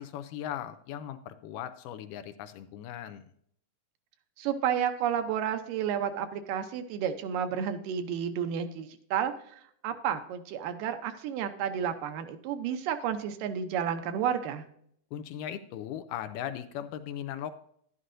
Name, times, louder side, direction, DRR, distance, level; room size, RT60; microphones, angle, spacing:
voice 1, 0.0-3.3 15.1-17.6, left 10 dB, 80° left, 11 dB, 2.0 m, -38 dB
voice 2, 4.4-9.3 9.8-14.6, right 8 dB, 80° right, 8 dB, 2.3 m, -31 dB
11.0 x 11.0 x 2.6 m, 0.67 s
omnidirectional pair, 3.9 m